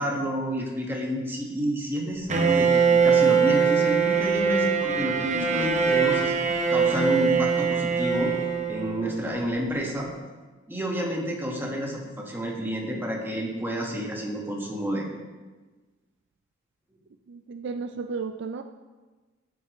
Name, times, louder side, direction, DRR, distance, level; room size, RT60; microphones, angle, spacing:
voice 1, 0.0-6.3 6.7-8.3 8.7-10.1 10.7-15.0, equal, 10° right, -1 dB, 1.5 m, -29 dB
Bowed string instrument, 2.3-9.2, right 6 dB, 35° right, 0.9 m, -22 dB
voice 2, 5.2-5.7 17.3-18.6, right 4 dB, 60° right, 7 dB, 0.4 m, -33 dB
13.0 x 7.9 x 3.1 m, 1.3 s
head